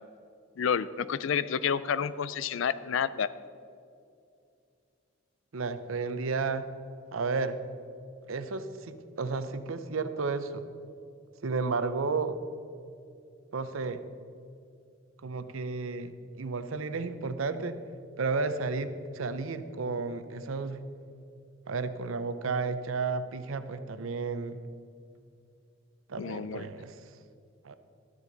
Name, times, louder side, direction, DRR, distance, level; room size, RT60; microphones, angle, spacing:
voice 1, 0.6-3.3 26.2-26.7, left 7 dB, 75° left, 16 dB, 0.4 m, -29 dB
voice 2, 5.5-6.7 7.1-7.6 8.3-10.6 11.4-12.4 13.5-14.0 15.2-16.1 16.4-17.8 18.2-20.8 21.7-24.6 26.1-27.0 27.6-27.7, right 4 dB, 85° right, 11 dB, 0.6 m, -32 dB
13.0 x 9.9 x 4.0 m, 2.5 s
head